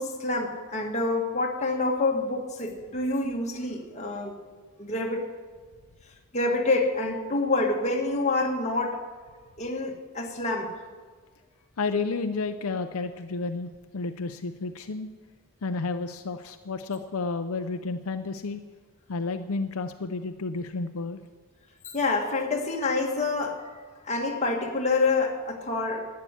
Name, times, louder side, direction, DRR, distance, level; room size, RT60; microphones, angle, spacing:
voice 1, 0.0-4.3 4.8-5.3 6.3-9.0 9.6-10.8 21.9-23.8 24.0-26.1, left 3 dB, 30° left, 1 dB, 1.8 m, -27 dB
voice 2, 11.8-15.1 15.6-18.6 19.1-21.2, left 3 dB, 75° left, 8 dB, 0.6 m, -31 dB
11.5 x 9.5 x 9.8 m, 1.5 s
head